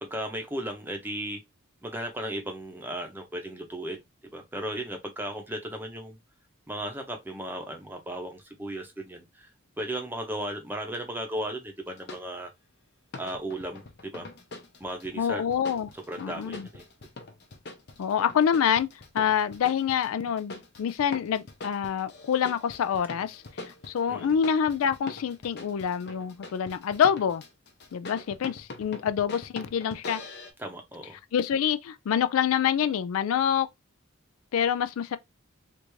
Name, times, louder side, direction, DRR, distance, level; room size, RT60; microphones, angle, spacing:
voice 1, 0.0-1.4 1.8-4.0 4.3-6.2 6.7-9.5 9.8-12.5 13.1-14.3 14.8-15.4 15.9-16.8 24.1-24.4 30.6-31.2, right 1 dB, 10° right, 0.7 m, -35 dB
sound 1, 11.9-12.2 13.1-15.1 15.5-30.5, left 2 dB, 50° left, 0.7 m, -43 dB
voice 2, 15.1-15.9 16.2-16.7 18.0-18.9 19.1-23.4 23.9-27.4 27.9-30.2 31.3-33.7 34.5-35.2, left 8 dB, 80° left, 0.3 m, -26 dB
3.4 x 2.5 x 3.1 m
head